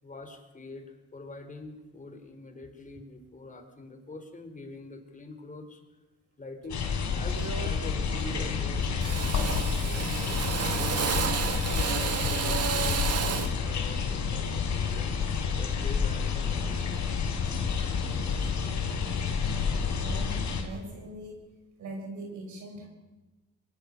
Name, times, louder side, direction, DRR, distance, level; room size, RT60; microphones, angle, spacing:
voice 1, 0.0-5.8 6.4-6.8 7.1-11.1 11.5-17.4 19.6-19.7, left 2 dB, 25° left, 6 dB, 4.4 m, -45 dB
sound 1, 6.7-20.6, left 6 dB, 70° left, 4.4 m, -29 dB
Drill, 6.7-6.9 7.3-7.8 8.1-8.7 9.0-13.6, right 7 dB, 55° right, 1.7 m, -31 dB
voice 2, 20.0-21.4 21.8-22.9, right 1 dB, 75° right, 1 dB, 6.3 m, -42 dB
23.0 x 20.0 x 6.8 m, 1.1 s
cardioid pair, 90°, 30 cm